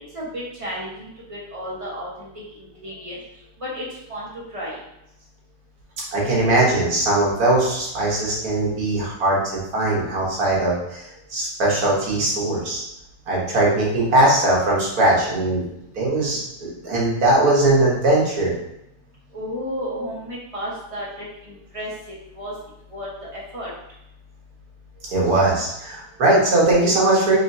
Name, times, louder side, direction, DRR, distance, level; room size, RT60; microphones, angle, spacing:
voice 1, 0.1-2.3 2.5-3.2 3.6-4.8 19.3-22.5 22.9-23.7, equal, 25° right, -6 dB, 1.1 m, -33 dB
voice 2, 6.1-12.8 13.3-15.6 15.9-18.5 19.9-20.0 25.1-27.4, right 2 dB, 70° right, -4 dB, 1.7 m, -20 dB
4.8 x 3.1 x 2.6 m, 0.82 s
omnidirectional pair, 1.7 m